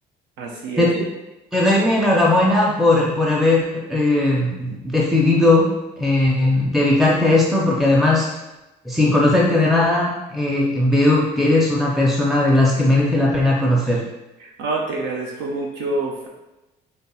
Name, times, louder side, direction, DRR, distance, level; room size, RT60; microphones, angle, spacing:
voice 1, 0.4-0.9 14.6-16.3, right 2 dB, 85° right, -1 dB, 0.5 m, -26 dB
voice 2, 1.5-5.7 6.0-8.3 8.9-14.0, left 2 dB, ahead, -3 dB, 0.5 m, -18 dB
4.2 x 3.2 x 2.3 m, 1.0 s
cardioid pair, 110°, 17 cm